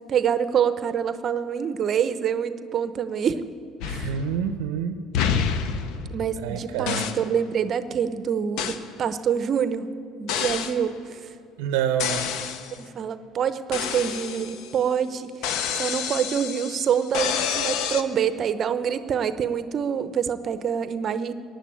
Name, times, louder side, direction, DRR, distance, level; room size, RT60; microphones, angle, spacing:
voice 1, 0.1-3.4 3.8-4.1 6.1-9.9 10.2-11.2 12.9-21.3, right 8 dB, 50° right, 12 dB, 0.8 m, -26 dB
sound 1, 3.8-4.7 5.1-6.5 6.9-7.3 8.6-8.9 10.3-10.8 12.0-12.8 13.7-14.8 15.4-18.0, left 7 dB, 70° left, 0.9 m, -28 dB
voice 2, 4.0-5.0 6.4-7.1 11.6-12.3, right 8 dB, 85° right, 8 dB, 0.7 m, -27 dB
16.0 x 9.3 x 8.8 m, 2.5 s
supercardioid pair, 75°, 0 cm